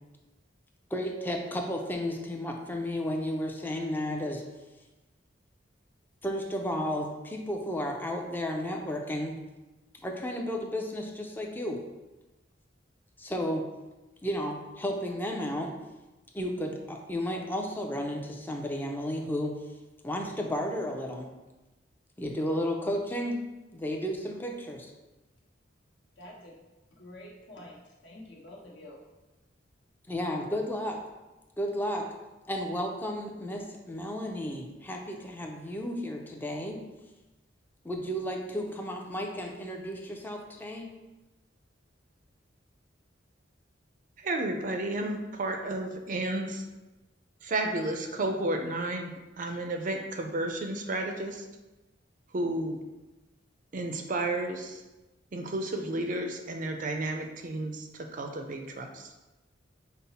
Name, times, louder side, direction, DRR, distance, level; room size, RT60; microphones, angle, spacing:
voice 1, 0.9-4.4 6.2-9.4 10.0-11.8 13.2-13.7 14.2-15.7 16.3-19.6 20.0-21.3 22.2-23.4 23.7-24.9 30.1-31.0 31.6-32.1 32.5-36.8 37.8-41.0, equal, 10° left, 2 dB, 0.5 m, -33 dB
voice 2, 26.2-26.6 26.9-29.1, left 1 dB, 70° left, -4 dB, 1.1 m, -48 dB
voice 3, 44.2-46.6 47.4-49.1 49.4-51.4 52.3-52.8 53.7-54.8 55.3-59.1, right 2 dB, 45° right, 4 dB, 0.5 m, -32 dB
5.4 x 2.0 x 4.1 m, 1.1 s
head